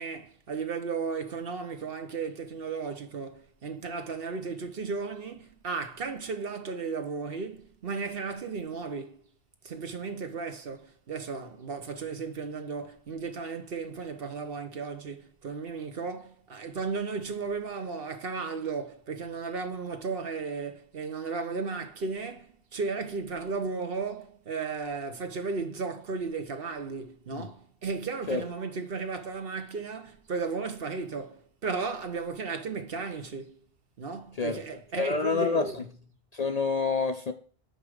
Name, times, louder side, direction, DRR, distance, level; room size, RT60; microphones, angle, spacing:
voice 1, 0.0-9.2 9.6-33.6 34.0-35.9, right 4 dB, 60° right, 1.1 m, -35 dB
voice 2, 35.0-35.8 36.3-37.3, left 4 dB, 45° left, 0.6 m, -28 dB
5.3 x 5.0 x 6.3 m
omnidirectional pair, 1.1 m